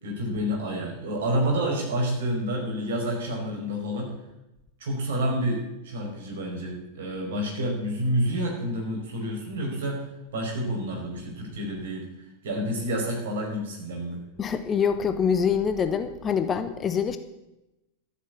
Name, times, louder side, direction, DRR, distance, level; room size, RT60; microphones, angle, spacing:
voice 1, 0.0-4.1 4.8-14.2, equal, 60° right, 0 dB, 4.8 m, -29 dB
voice 2, 14.4-17.2, left 7 dB, 25° left, 10 dB, 0.9 m, -25 dB
13.0 x 7.8 x 8.5 m, 0.94 s
figure-of-eight pair, 90°, 0 cm